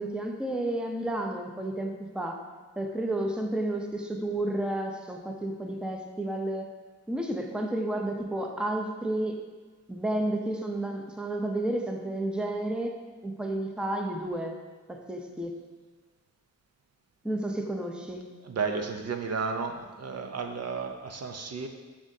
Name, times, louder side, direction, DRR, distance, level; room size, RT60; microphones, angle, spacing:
voice 1, 0.0-2.4 2.8-6.7 7.1-9.4 9.9-12.9 13.2-14.6 14.9-15.6 17.2-18.3, right 1 dB, 5° right, 2 dB, 0.6 m, -31 dB
voice 2, 18.4-21.7, right 5 dB, 55° right, 4 dB, 0.6 m, -33 dB
7.0 x 6.3 x 2.7 m, 1.3 s
wide cardioid pair, 95°, 31 cm